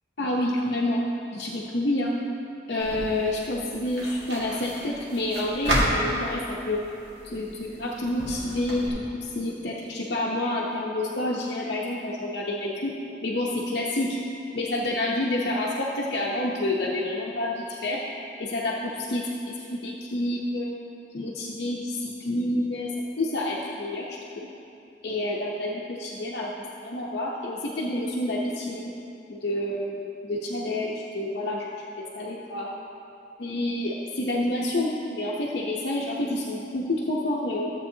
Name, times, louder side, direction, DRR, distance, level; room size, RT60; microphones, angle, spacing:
voice 1, 0.2-1.0 1.3-2.1 2.7-6.8 7.2-12.9 13.2-14.2 14.5-18.0 18.4-20.7 21.1-22.9 23.2-24.5 25.0-26.5 26.8-28.9 29.3-31.7 32.2-32.7 33.4-37.7, left 1 dB, 65° left, -5 dB, 0.7 m, -28 dB
sound 1, 2.8-8.9, right 1 dB, 70° right, 2.1 m, -32 dB
13.5 x 7.7 x 2.8 m, 2.7 s
head